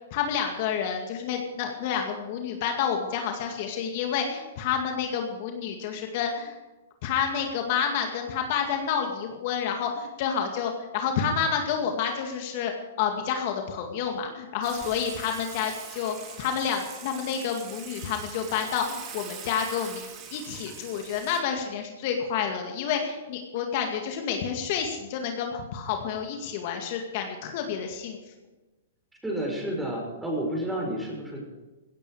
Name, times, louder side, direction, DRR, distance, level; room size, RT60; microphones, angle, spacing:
voice 1, 0.1-6.6 7.0-12.7 13.0-20.0 20.3-28.2, left 7 dB, 50° left, 3 dB, 2.1 m, -29 dB
Water / Water tap faucet / Sink (filling or washing), 14.6-21.4, right 7 dB, 30° right, 3.0 m, -43 dB
voice 2, 29.2-31.4, right 1 dB, 5° right, -1 dB, 5.8 m, -30 dB
16.5 x 14.5 x 5.0 m, 1.1 s
hypercardioid pair, 130°, 0 cm